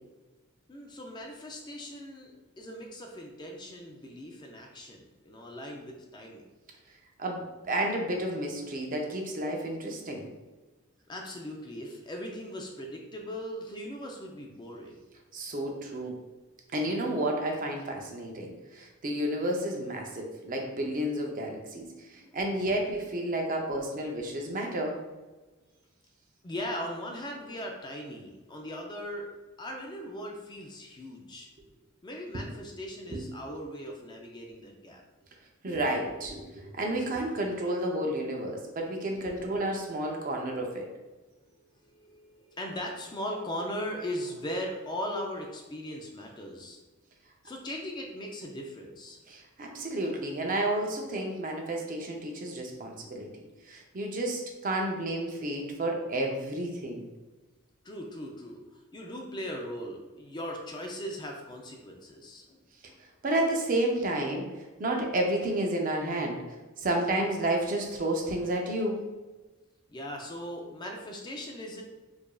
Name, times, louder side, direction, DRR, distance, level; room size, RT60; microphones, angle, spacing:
voice 1, 0.7-6.5 11.1-14.9 22.1-22.4 26.4-29.3 29.6-31.5 32.0-35.0 41.6-46.8 47.4-49.2 57.8-63.0 69.9-71.8, equal, 20° left, 1 dB, 0.4 m, -39 dB
voice 2, 7.2-10.3 15.3-16.1 16.7-25.0 33.1-33.2 35.6-40.9 49.3-57.1 63.2-64.5 64.8-69.0, right 1 dB, 40° right, 1 dB, 0.5 m, -31 dB
4.7 x 2.5 x 2.3 m, 1.2 s
head